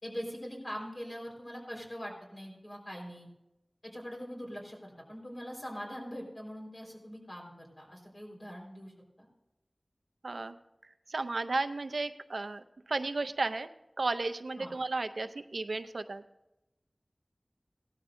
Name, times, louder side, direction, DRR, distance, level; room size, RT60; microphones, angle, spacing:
voice 1, 0.0-3.3 3.9-9.3 14.6-14.7, equal, 45° left, -2 dB, 4.3 m, -42 dB
voice 2, 10.2-10.6 11.1-13.7 14.0-16.2, right 3 dB, 85° right, 10 dB, 0.5 m, -34 dB
17.5 x 12.5 x 2.6 m, 0.92 s
wide cardioid pair, 50°, 0 cm